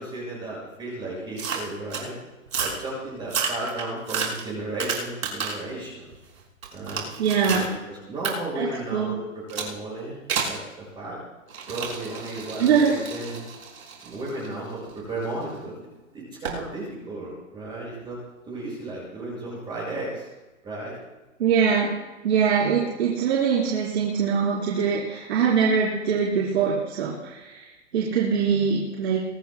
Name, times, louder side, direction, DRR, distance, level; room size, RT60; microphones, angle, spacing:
voice 1, 0.0-2.2 2.6-6.1 6.7-7.1 7.5-10.2 10.5-11.2 11.7-13.5 14.0-15.7 16.1-18.2 18.5-20.3 20.6-21.0, right 2 dB, 10° right, -5 dB, 5.7 m, -34 dB
sound 1, 1.4-2.1 2.5-2.8 3.2-5.7 6.1-7.7 8.2-8.3 9.5-9.7 10.3-10.6 11.5-15.4 16.4-16.6, right 6 dB, 85° right, 5.8 m, -31 dB
voice 2, 7.2-7.7 8.6-9.1 12.6-12.9 21.4-22.0 22.2-29.2, right 6 dB, 50° right, -6 dB, 3.9 m, -23 dB
23.0 x 18.5 x 2.2 m, 1.1 s
hypercardioid pair, 165°, 40 cm